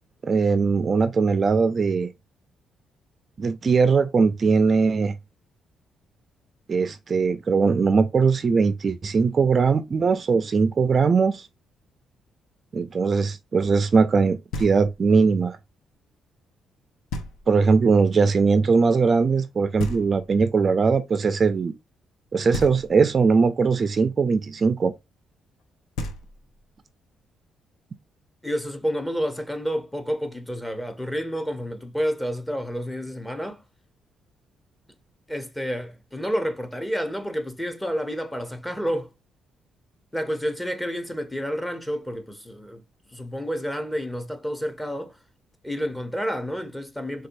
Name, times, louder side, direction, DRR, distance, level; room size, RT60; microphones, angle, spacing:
voice 1, 0.2-2.1 3.4-5.1 6.7-11.5 12.7-15.6 17.5-21.7 22.3-24.9, right 5 dB, 40° right, 0.3 m, -20 dB
Knock, 14.5-15.2 17.1-17.8 19.8-20.6 22.5-23.3 25.6-25.7 26.0-26.8, left 2 dB, 85° left, 0.7 m, -35 dB
voice 2, 28.4-33.6 35.3-39.1 40.1-42.8 43.1-45.1 45.6-47.3, equal, 10° left, 0.7 m, -29 dB
4.1 x 2.2 x 2.5 m
cardioid pair, 90°, 0 cm